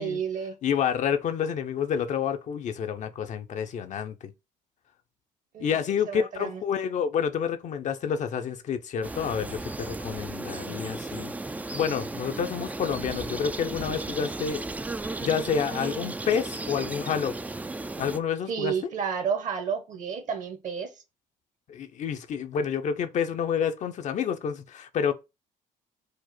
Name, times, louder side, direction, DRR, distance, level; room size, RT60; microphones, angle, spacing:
voice 1, 0.0-0.6 5.5-5.8 6.1-6.6 18.5-20.9, right 7 dB, 55° right, 1.2 m, -31 dB
voice 2, 0.6-4.3 5.6-11.3 11.7-14.6 15.2-17.4 18.0-18.7 21.7-25.1, left 7 dB, 55° left, 0.6 m, -29 dB
sound 1, 9.0-18.2, right 2 dB, 10° right, 0.3 m, -35 dB
4.9 x 2.0 x 4.2 m
supercardioid pair, 80°, 15 cm